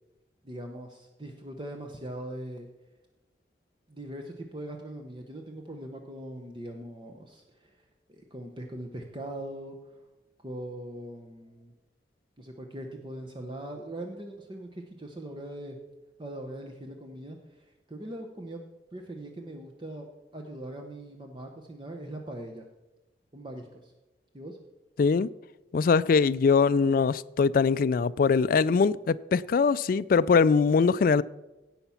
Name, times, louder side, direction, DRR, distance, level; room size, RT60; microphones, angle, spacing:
voice 1, 0.4-2.7 3.9-7.8 8.1-9.9 10.4-11.7 12.4-15.8 16.2-18.6 18.9-22.7 23.3-23.9 24.3-24.6, right 1 dB, 30° right, 0.9 m, -41 dB
voice 2, 25.0-25.3 25.7-31.2, left 5 dB, 50° left, 0.3 m, -22 dB
17.0 x 5.9 x 5.7 m
head